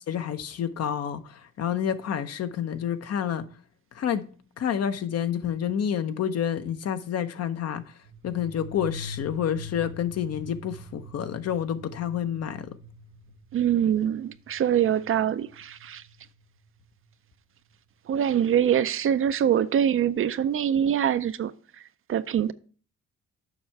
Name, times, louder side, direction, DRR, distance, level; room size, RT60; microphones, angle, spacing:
voice 1, 0.1-3.5 3.9-4.3 4.6-7.8 8.2-12.8, left 9 dB, 55° left, 0.7 m, -29 dB
sound 1, 8.0-16.4, left 1 dB, 80° right, 1.3 m, -43 dB
voice 2, 13.5-16.0 18.1-21.5 22.1-22.5, right 9 dB, 45° right, 0.4 m, -24 dB
7.2 x 5.5 x 4.6 m
cardioid pair, 90°, 30 cm